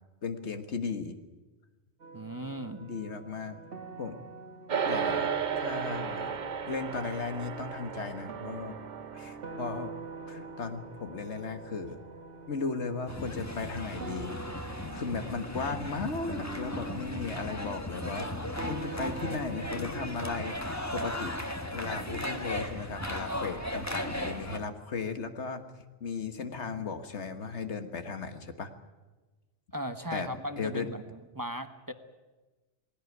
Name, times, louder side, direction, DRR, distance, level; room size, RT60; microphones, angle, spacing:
voice 1, 0.2-1.2 2.8-3.6 4.0-4.2 4.9-6.4 6.7-8.8 9.1-9.9 10.3-12.0 12.5-14.5 14.9-18.3 18.6-21.4 21.7-25.6 26.0-28.7 30.1-30.3 30.6-30.9, left 4 dB, 70° left, 8 dB, 1.8 m, -36 dB
sound 1, 2.0-20.4, right 4 dB, 80° right, 2.0 m, -45 dB
voice 2, 2.1-2.8 29.7-31.9, equal, 20° right, 8 dB, 1.1 m, -37 dB
sound 2, 4.7-14.2, right 7 dB, 45° right, 0.8 m, -36 dB
sound 3, 13.1-24.6, left 1 dB, 15° left, 1.4 m, -36 dB
19.5 x 17.0 x 9.4 m, 1.2 s
omnidirectional pair, 1.2 m